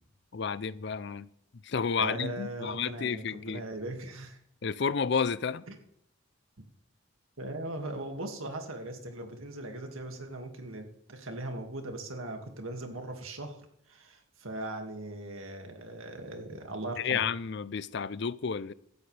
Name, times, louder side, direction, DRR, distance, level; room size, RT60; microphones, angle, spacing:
voice 1, 0.3-1.3 1.6-3.6 4.6-5.6 17.0-18.7, left 6 dB, 55° left, 0.5 m, -31 dB
voice 2, 2.0-4.4 5.7-5.8 7.4-13.6 13.9-17.2, right 1 dB, 80° right, 2.2 m, -39 dB
16.5 x 13.0 x 3.4 m
head